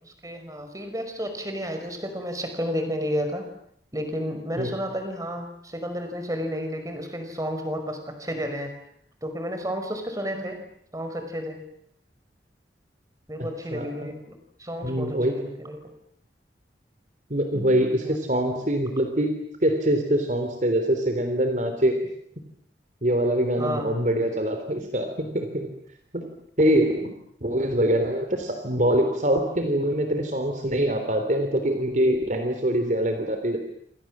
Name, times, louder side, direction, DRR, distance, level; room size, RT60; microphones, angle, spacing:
voice 1, 0.0-3.5 3.9-8.8 9.2-10.6 10.9-11.6 13.3-15.9 17.5-18.2 23.6-23.9 24.8-24.9, equal, 20° right, 6 dB, 5.1 m, -32 dB
voice 2, 13.7-14.1 14.8-15.4 17.3-22.0 23.0-25.7 26.1-26.3 26.6-27.1 27.4-33.6, right 1 dB, 45° right, 6 dB, 3.4 m, -24 dB
28.5 x 27.0 x 7.5 m, 0.69 s
head